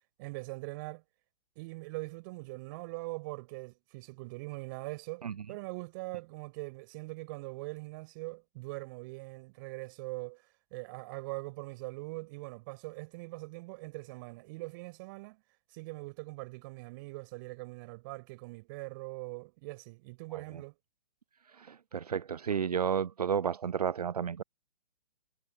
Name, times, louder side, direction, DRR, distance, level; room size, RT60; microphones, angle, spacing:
voice 1, 0.2-1.0 1.5-10.4 10.7-15.4 15.7-20.8, right 25 dB, 30° right, 4.7 m, -42 dB
voice 2, 20.3-20.6 21.4-24.4, right 7 dB, 70° right, 0.5 m, -32 dB
figure-of-eight pair, 120°, 21 cm